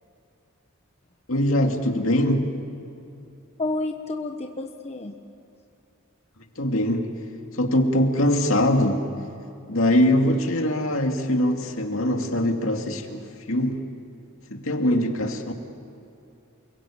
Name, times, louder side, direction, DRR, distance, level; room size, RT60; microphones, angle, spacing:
voice 1, 1.3-2.5 6.6-7.1 7.5-9.0 9.7-13.8 14.5-15.5, left 1 dB, 70° left, 3 dB, 2.6 m, -22 dB
voice 2, 3.6-5.1, left 2 dB, 30° left, 3 dB, 1.2 m, -30 dB
29.5 x 22.0 x 8.8 m, 2.6 s
head